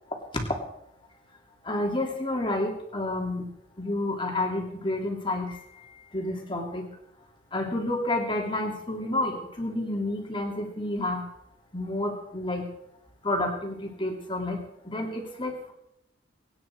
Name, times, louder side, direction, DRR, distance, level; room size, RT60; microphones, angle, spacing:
voice 1, 1.7-3.5 3.8-5.6 6.1-6.8 7.5-11.2 11.7-12.7 13.2-14.6 14.9-15.7, left 1 dB, 25° left, 2 dB, 2.9 m, -30 dB
24.0 x 9.9 x 4.6 m, 0.79 s
head